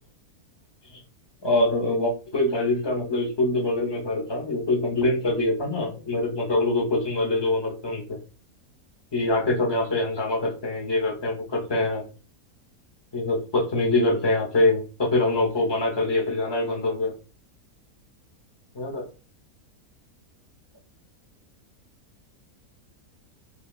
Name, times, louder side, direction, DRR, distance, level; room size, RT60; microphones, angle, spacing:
voice 1, 1.4-8.2 9.1-12.0 13.1-17.1 18.7-19.0, left 2 dB, 35° left, -2 dB, 0.4 m, -24 dB
3.3 x 2.3 x 2.3 m, 0.33 s
omnidirectional pair, 1.6 m